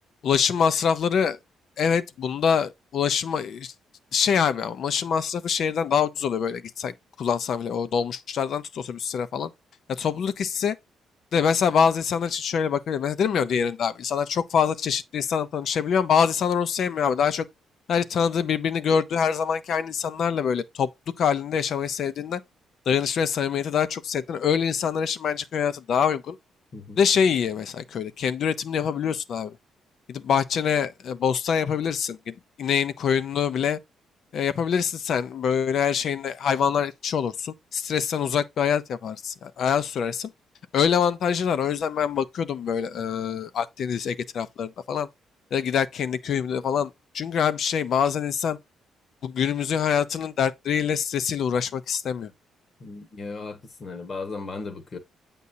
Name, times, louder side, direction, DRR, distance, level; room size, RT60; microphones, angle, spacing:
voice 1, 0.2-1.4 1.8-3.7 4.1-9.5 9.9-10.8 11.3-17.5 17.9-20.9 21.2-22.4 22.9-26.4 27.0-29.6 30.1-33.8 34.3-40.3 40.7-45.1 45.5-48.6 49.2-52.3, left 7 dB, 65° left, 0.7 m, -25 dB
voice 2, 52.8-55.0, left 3 dB, 45° left, 1.4 m, -36 dB
8.4 x 5.3 x 2.7 m
cardioid pair, 90°, 0 cm